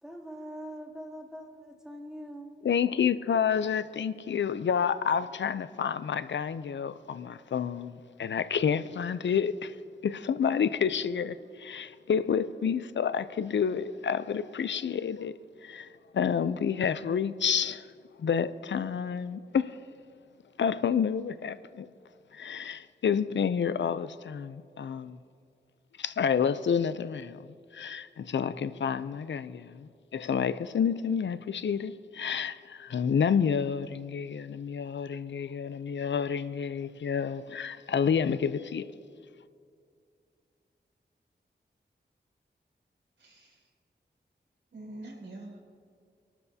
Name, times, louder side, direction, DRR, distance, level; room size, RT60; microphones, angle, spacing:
voice 1, 0.0-2.6, equal, 5° right, 2.8 m, -43 dB
voice 2, 2.6-9.8 10.0-15.9 16.1-17.9 18.2-19.8 20.6-21.9 22.3-25.2 26.0-27.5 27.7-38.9, left 7 dB, 80° left, 0.5 m, -29 dB
voice 3, 43.2-43.7 44.7-45.6, right 2 dB, 85° right, 4.3 m, -45 dB
26.5 x 12.5 x 2.8 m
wide cardioid pair, 85°, 18 cm